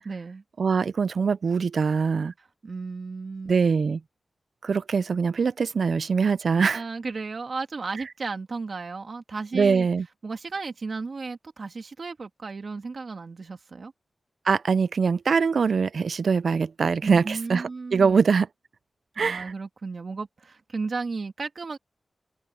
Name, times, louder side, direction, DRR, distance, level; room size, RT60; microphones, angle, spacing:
voice 1, 0.1-0.4 2.4-3.5 6.7-9.9 10.2-13.9 17.0-18.1 19.2-21.8, right 4 dB, 55° right, 1.8 m, -34 dB
voice 2, 0.6-2.3 3.5-4.0 4.6-6.8 9.5-10.1 14.5-18.5 19.2-19.5, right 5 dB, 75° right, 0.4 m, -23 dB
wide cardioid pair, 130°, 0 cm